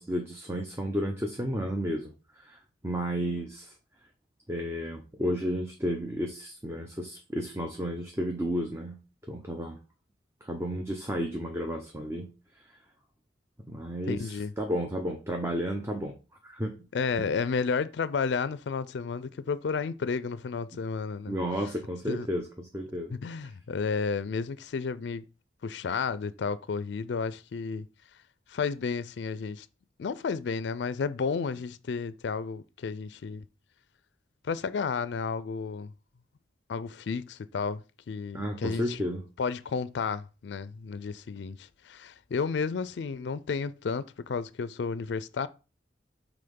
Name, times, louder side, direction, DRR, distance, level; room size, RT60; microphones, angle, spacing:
voice 1, 0.0-2.1 2.4-2.6 2.8-3.7 4.5-9.0 9.3-9.8 10.4-12.3 13.7-16.1 16.4-16.7 21.3-23.1 38.3-39.2, equal, 15° right, 0.7 m, -32 dB
voice 2, 14.1-14.5 16.9-21.4 22.1-22.3 23.1-25.2 25.6-27.9 28.5-29.7 30.0-33.4 34.4-35.9 36.7-37.8 38.1-39.1 39.4-45.5, left 5 dB, 70° left, 0.4 m, -32 dB
5.7 x 3.5 x 5.2 m
head